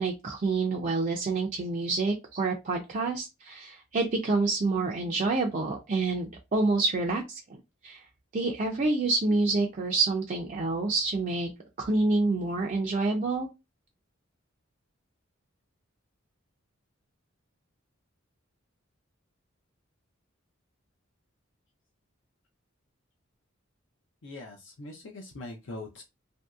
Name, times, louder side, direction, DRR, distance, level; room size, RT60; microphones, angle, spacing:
voice 1, 0.0-7.4 7.8-8.0 8.3-11.5 11.8-13.5, right 3 dB, 40° right, 0 dB, 0.4 m, -27 dB
voice 2, 24.2-26.0, left 2 dB, 65° left, 1 dB, 0.5 m, -42 dB
2.9 x 2.6 x 2.3 m, 0.24 s
head